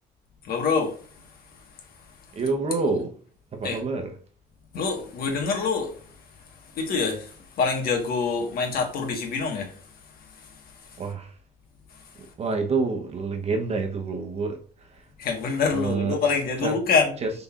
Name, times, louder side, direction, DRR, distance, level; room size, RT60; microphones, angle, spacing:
voice 1, 0.4-1.0 1.5-1.6 2.0-2.1 3.6-3.8 4.7-6.1 6.5-9.9 10.2-11.0 11.9-12.1 15.2-17.1, left 5 dB, 60° left, 1.4 m, -26 dB
voice 2, 2.3-3.2 3.5-4.1 11.0-11.4 12.1-15.1 15.7-16.2 16.6-16.8 17.2-17.3, right 4 dB, 40° right, 0.9 m, -28 dB
5.4 x 3.9 x 2.4 m
cardioid pair, 110°, 17 cm